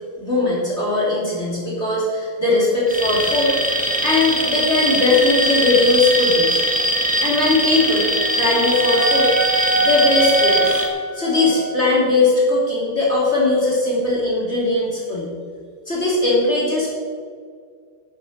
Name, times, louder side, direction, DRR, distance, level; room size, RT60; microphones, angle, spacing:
voice 1, 0.2-3.5 4.0-6.6 7.2-9.3 9.8-10.8 11.1-15.3 15.9-16.9, left 2 dB, 30° left, -6 dB, 3.6 m, -19 dB
Alarm, 2.9-10.9, right 1 dB, 5° right, 1.2 m, -21 dB
Wind instrument woodwind instrument, 7.8-12.0, right 3 dB, 45° right, 4.4 m, -24 dB
11.5 x 8.7 x 6.5 m, 2.1 s
omnidirectional pair, 2.3 m